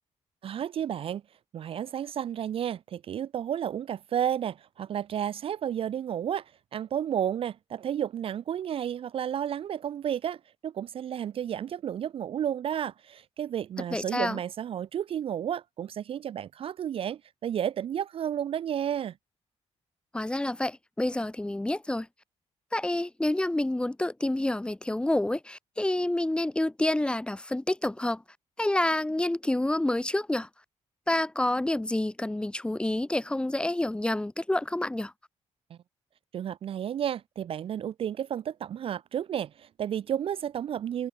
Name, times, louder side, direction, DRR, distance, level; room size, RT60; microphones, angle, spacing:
voice 1, 0.4-1.2 1.5-19.1 35.7-35.8 36.3-41.1, right 9 dB, 50° right, 0.4 m, -32 dB
voice 2, 13.9-14.4 20.1-22.1 22.7-28.2 28.6-30.5 31.1-35.1, left 1 dB, 10° left, 0.8 m, -28 dB
wide cardioid pair, 150°, 12 cm